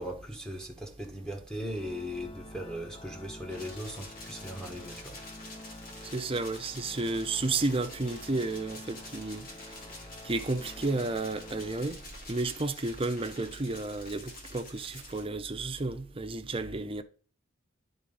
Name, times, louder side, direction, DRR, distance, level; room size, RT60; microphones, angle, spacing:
voice 1, 0.0-5.2, equal, 5° left, 1.2 m, -38 dB
Organ, 1.7-12.5, left 2 dB, 25° left, 0.4 m, -49 dB
sound 1, 3.5-15.2, left 2 dB, 45° left, 2.1 m, -48 dB
voice 2, 6.1-9.5 10.2-12.0 12.3-17.0, right 3 dB, 30° right, 0.7 m, -32 dB
10.0 x 3.9 x 5.4 m
head